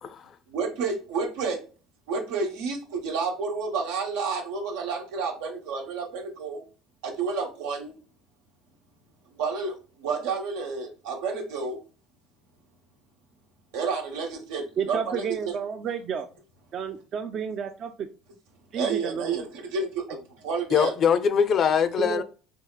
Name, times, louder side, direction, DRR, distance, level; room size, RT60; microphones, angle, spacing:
voice 1, 0.5-1.6 2.1-6.6 7.0-7.9 9.3-11.8 13.7-15.2 18.7-20.9, right 4 dB, 85° right, 1.1 m, -30 dB
voice 2, 14.8-16.3 16.7-18.1 18.7-19.4 22.0-22.2, right 7 dB, 45° right, 0.4 m, -31 dB
voice 3, 20.7-22.2, left 7 dB, 40° left, 0.4 m, -22 dB
4.5 x 2.8 x 2.3 m
cardioid pair, 125°, 0 cm